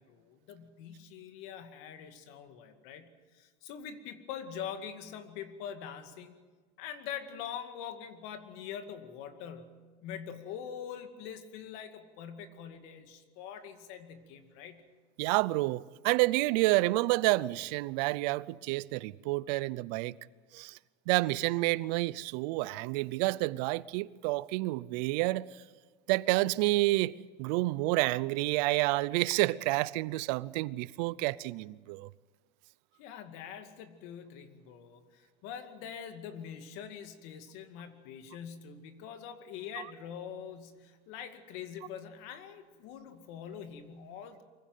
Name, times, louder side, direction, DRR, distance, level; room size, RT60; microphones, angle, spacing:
voice 1, 0.0-6.3 6.8-14.8 33.0-44.4, left 8 dB, 75° left, 2.3 m, -44 dB
voice 2, 15.2-20.1 20.5-20.8 21.1-25.5 26.1-32.1, right 20 dB, 80° right, 0.6 m, -29 dB
24.0 x 16.0 x 9.2 m
cardioid pair, 130°, 21 cm